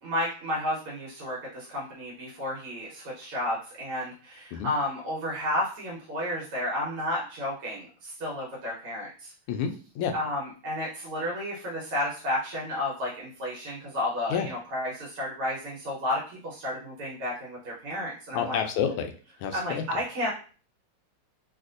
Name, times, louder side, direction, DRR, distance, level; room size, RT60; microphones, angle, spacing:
voice 1, 0.0-9.3 10.1-18.6 19.5-20.3, left 1 dB, 80° right, -5 dB, 1.9 m, -32 dB
voice 2, 9.5-10.1 14.3-14.5 18.3-19.1 19.4-20.0, left 7 dB, 90° left, 6 dB, 1.5 m, -29 dB
4.0 x 2.5 x 2.5 m, 0.38 s
omnidirectional pair, 2.4 m